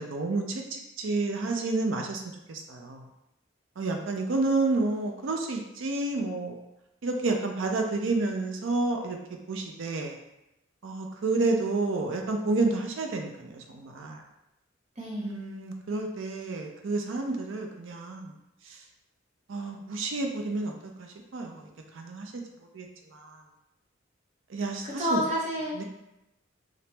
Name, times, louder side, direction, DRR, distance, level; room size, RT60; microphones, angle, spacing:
voice 1, 0.0-2.2 2.5-3.1 3.8-6.5 7.0-9.2 9.5-10.2 10.8-14.2 15.2-18.3 18.7-18.8 19.5-22.3 22.7-23.4 24.5-25.2 25.7-25.8, right 3 dB, 70° right, 2 dB, 0.4 m, -30 dB
voice 2, 15.0-15.4 24.8-25.8, equal, 35° right, -4 dB, 0.7 m, -30 dB
2.8 x 2.0 x 3.2 m, 0.90 s
head